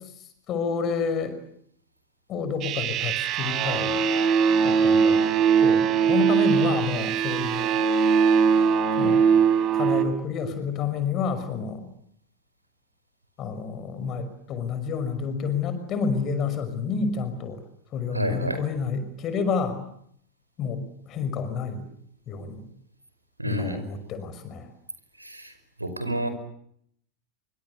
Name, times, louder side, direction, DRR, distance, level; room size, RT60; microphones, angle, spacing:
voice 1, 0.5-1.4 2.3-4.0 4.6-7.7 9.0-9.2 9.7-11.9 13.4-17.6 17.9-19.8 20.6-20.8 21.1-21.9 22.3-22.7 23.4-24.7, left 5 dB, 35° left, 11 dB, 6.0 m, -29 dB
sound 1, 2.6-10.1, right 6 dB, 35° right, 3.7 m, -21 dB
voice 2, 18.1-18.7 23.4-23.8 25.2-25.5 25.8-26.3, right 1 dB, 85° right, 10 dB, 5.1 m, -29 dB
27.5 x 25.0 x 8.3 m, 0.70 s
figure-of-eight pair, 90°, 0 cm